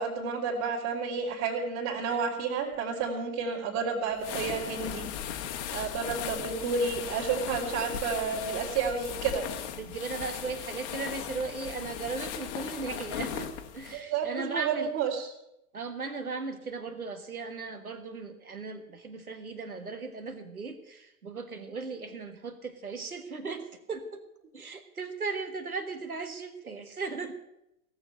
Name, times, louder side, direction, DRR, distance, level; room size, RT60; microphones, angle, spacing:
voice 1, 0.0-5.1 5.7-9.5 13.9-15.2, right 5 dB, 45° right, -5 dB, 3.2 m, -31 dB
sound 1, 4.2-14.0, left 9 dB, 50° left, 1.6 m, -37 dB
voice 2, 9.7-14.9 15.7-24.2 24.5-27.4, right 4 dB, 85° right, 7 dB, 1.7 m, -37 dB
17.5 x 7.1 x 9.2 m, 0.83 s
figure-of-eight pair, 95°, 42 cm